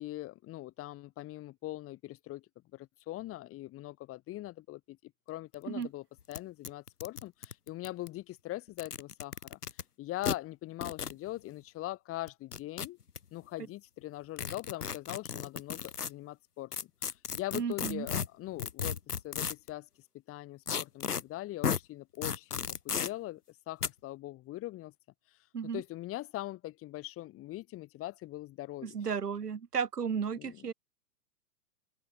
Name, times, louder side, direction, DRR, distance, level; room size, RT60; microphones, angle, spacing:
voice 1, 0.0-2.4 2.7-9.6 10.0-13.0 13.3-19.9 20.3-23.4 23.7-24.9 25.7-29.0 30.4-30.7, left 16 dB, 30° left, 4.4 m, -42 dB
sound 1, 5.5-5.6 5.8-5.9 6.3-6.4 6.6-8.1 8.7-9.8 10.2-10.4 10.8-11.2 12.3-13.2 14.4-16.1 16.7-19.7 20.7-21.2 21.6-21.8 22.2-23.1 23.8-23.9, left 7 dB, 70° left, 4.8 m, -34 dB
voice 2, 17.5-18.1 25.5-25.8 28.8-30.7, right 6 dB, 70° right, 8.0 m, -34 dB
open air
figure-of-eight pair, 110°, 48 cm